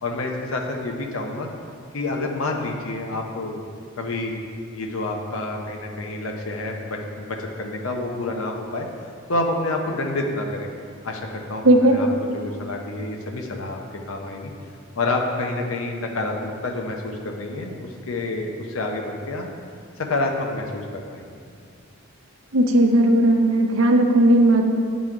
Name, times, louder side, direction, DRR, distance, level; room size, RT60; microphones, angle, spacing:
voice 1, 0.0-1.5 1.9-3.6 4.0-4.3 4.7-8.9 9.3-10.7 11.0-12.1 12.3-13.8 14.1-14.5 15.0-19.5 20.0-21.4, left 2 dB, 85° left, 1 dB, 0.7 m, -28 dB
voice 2, 11.6-12.0 22.5-24.7, right 1 dB, 80° right, 4 dB, 0.7 m, -16 dB
8.9 x 4.1 x 4.7 m, 2.2 s
head